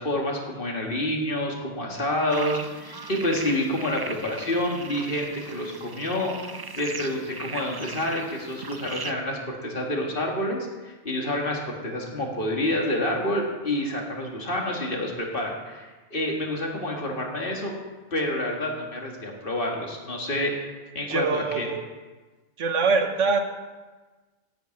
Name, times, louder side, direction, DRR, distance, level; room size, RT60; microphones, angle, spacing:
voice 1, 0.0-17.7 18.1-21.7, left 1 dB, 50° left, 0 dB, 2.0 m, -28 dB
sound 1, 2.3-9.1, right 4 dB, 35° right, 0.4 m, -38 dB
voice 2, 21.1-21.8 22.6-23.4, right 4 dB, 85° right, 6 dB, 1.4 m, -23 dB
10.0 x 6.1 x 8.8 m, 1.3 s
omnidirectional pair, 1.2 m